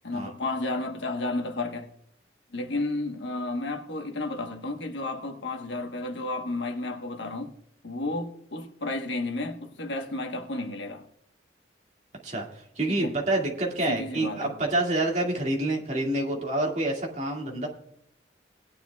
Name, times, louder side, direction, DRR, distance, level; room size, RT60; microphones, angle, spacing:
voice 1, 0.0-1.9 2.5-7.5 7.8-11.1 12.9-13.1 13.9-14.5, left 2 dB, 80° left, 1.2 m, -32 dB
voice 2, 12.2-17.7, right 2 dB, 40° right, 2.2 m, -27 dB
18.5 x 10.0 x 2.3 m
head